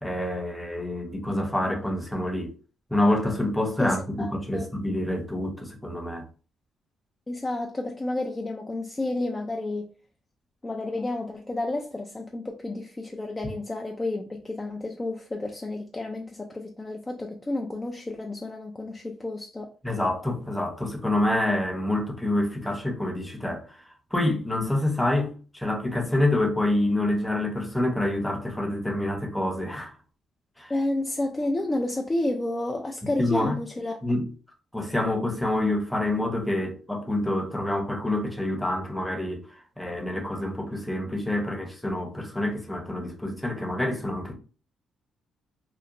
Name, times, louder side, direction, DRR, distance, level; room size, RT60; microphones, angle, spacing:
voice 1, 0.0-2.5 2.9-6.2 19.8-23.7 24.1-29.9 30.6-30.7 33.2-33.6 34.0-34.3 34.7-39.5 39.8-44.3, left 1 dB, 5° left, 0.7 m, -27 dB
voice 2, 3.8-4.7 7.3-9.9 10.6-19.7 30.7-34.0, left 2 dB, 20° left, 0.3 m, -31 dB
2.9 x 2.1 x 2.5 m
cardioid pair, 90°, 0 cm